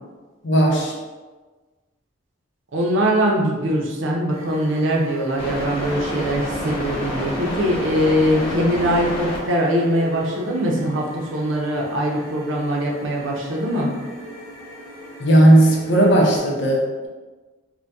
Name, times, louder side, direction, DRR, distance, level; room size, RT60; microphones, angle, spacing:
voice 1, 0.4-0.9 15.2-17.1, right 1 dB, 60° left, -2 dB, 0.6 m, -15 dB
voice 2, 2.7-13.9, equal, 70° right, -2 dB, 0.6 m, -22 dB
sound 1, 4.3-16.4, left 1 dB, 25° left, 0.7 m, -32 dB
2.7 x 2.2 x 3.4 m, 1.3 s
head